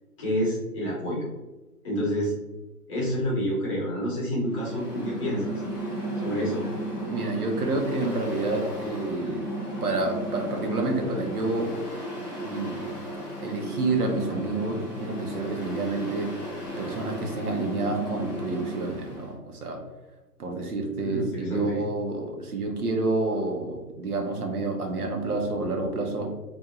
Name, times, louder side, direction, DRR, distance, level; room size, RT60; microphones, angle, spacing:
voice 1, 0.2-1.3 1.8-2.3 2.9-5.5 6.2-6.6 21.0-21.8, equal, 20° left, -5 dB, 0.9 m, -28 dB
Mechanical fan, 4.4-19.3, right 1 dB, 5° left, 0.6 m, -35 dB
voice 2, 7.1-9.5 9.8-11.8 12.4-12.9 13.4-16.5 16.8-19.8 20.4-26.3, right 2 dB, 70° right, 2 dB, 1.1 m, -29 dB
4.2 x 2.7 x 2.5 m, 1.1 s
figure-of-eight pair, 145°, 46 cm